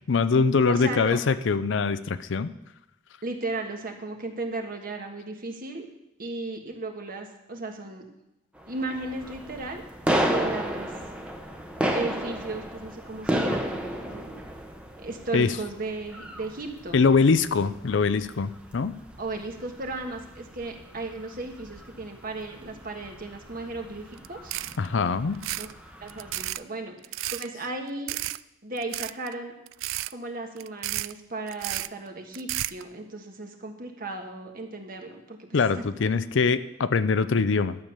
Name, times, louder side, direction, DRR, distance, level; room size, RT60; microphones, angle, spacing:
voice 1, 0.1-2.5 15.3-15.5 16.9-18.9 24.8-25.4 35.5-37.8, left 4 dB, 65° left, 14 dB, 0.5 m, -23 dB
voice 2, 0.7-1.2 3.2-5.9 6.2-8.0 8.7-9.8 10.2-10.9 11.9-14.3 15.0-17.0 17.7-17.8 19.2-24.6 25.6-25.7 26.0-27.0 27.3-28.2 28.6-29.5 30.1-35.5 35.9-36.1, right 2 dB, 45° right, 3 dB, 1.5 m, -35 dB
sound 1, 8.6-26.5, right 1 dB, 5° right, 1.0 m, -34 dB
sound 2, 24.2-24.3 24.5-24.9 25.3-25.7 26.1-26.6 27.0-27.5 28.1-28.4 28.8-29.3 29.7-30.1 30.6-31.1 31.5-31.9 32.3-32.8, right 16 dB, 85° right, 0.3 m, -32 dB
12.0 x 7.1 x 6.5 m, 0.86 s
head